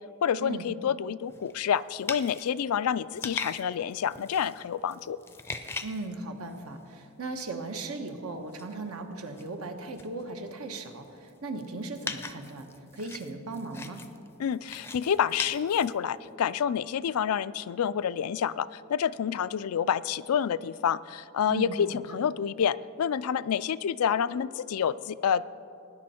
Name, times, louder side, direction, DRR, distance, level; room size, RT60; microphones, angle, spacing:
voice 1, 0.2-5.2 14.4-25.4, left 8 dB, 75° left, 16 dB, 0.4 m, -28 dB
sound 1, 1.3-6.9 7.4-8.0 8.3-16.3, left 3 dB, 10° left, 0.5 m, -41 dB
voice 2, 5.8-12.7 12.9-14.0 21.5-22.0, right 3 dB, 75° right, 5 dB, 1.3 m, -37 dB
19.5 x 10.0 x 4.4 m, 2.6 s
head